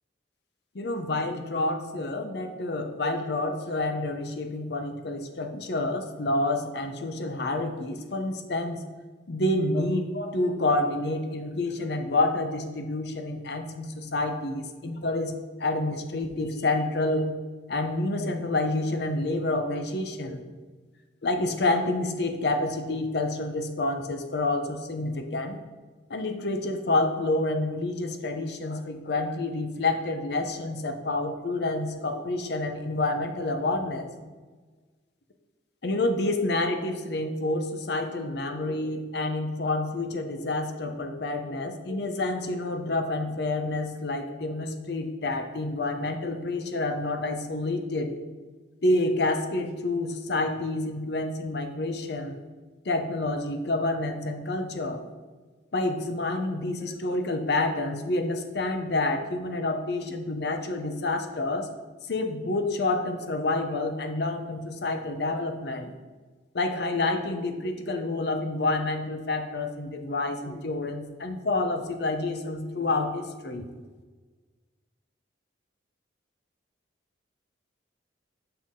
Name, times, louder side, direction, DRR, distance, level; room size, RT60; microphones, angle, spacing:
voice 1, 0.7-8.8 9.3-15.3 15.6-17.3 17.7-20.4 21.2-25.6 26.1-34.1 35.8-48.1 48.8-52.4 52.8-55.0 55.7-61.7 62.1-65.9 66.5-73.6, left 2 dB, 55° left, 6 dB, 0.6 m, -28 dB
6.2 x 5.7 x 3.7 m, 1.4 s
head